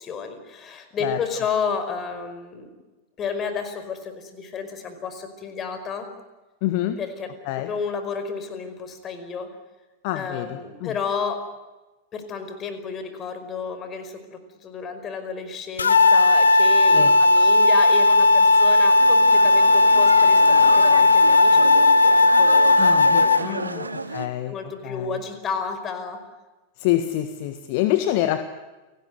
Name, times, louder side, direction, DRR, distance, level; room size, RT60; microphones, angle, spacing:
voice 1, 0.0-2.7 3.2-6.1 7.0-7.3 7.6-9.5 10.1-11.4 12.1-26.2, left 5 dB, 25° left, 9 dB, 5.1 m, -32 dB
voice 2, 6.6-7.0 7.4-7.7 10.0-10.9 16.9-17.1 22.7-24.5 24.8-25.2 26.8-28.5, left 13 dB, 45° left, 11 dB, 1.6 m, -26 dB
sound 1, 15.8-23.4, left 3 dB, 75° left, 1.3 m, -15 dB
sound 2, 19.0-24.3, right 3 dB, 80° right, 1.4 m, -29 dB
30.0 x 19.0 x 9.5 m, 1.1 s
figure-of-eight pair, 90°, 0 cm